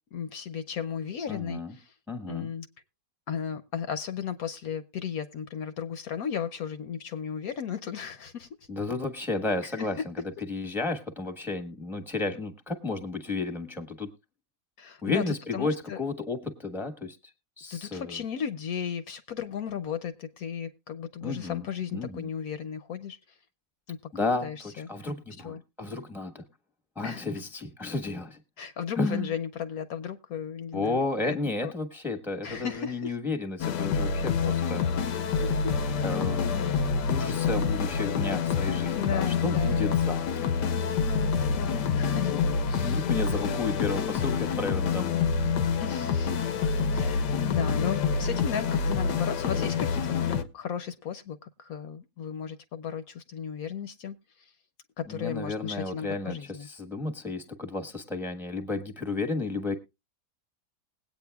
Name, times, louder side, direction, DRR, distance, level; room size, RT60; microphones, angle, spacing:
voice 1, 0.1-1.9 2.3-2.7 3.3-8.7 9.8-9.9 14.8-16.0 17.7-23.4 23.9-24.0 24.4-24.9 25.4-25.6 27.0-27.3 28.6-31.7 32.4-33.2 35.4-35.8 38.6-39.9 41.0-42.4 42.7-43.1 45.8-46.5 46.9-54.5 55.0-56.7, left 8 dB, 65° left, 1.1 m, -35 dB
voice 2, 1.3-1.7 2.1-2.5 8.7-10.1 10.5-14.1 15.0-17.2 17.6-18.2 21.2-21.6 21.9-22.3 24.1-26.4 26.9-28.4 29.0-29.3 30.7-34.9 36.0-40.5 42.8-45.3 55.1-59.7, left 3 dB, ahead, 1.1 m, -32 dB
sound 1, 33.6-50.4, left 5 dB, 90° left, 1.4 m, -27 dB
20.5 x 8.8 x 2.3 m
omnidirectional pair, 1.8 m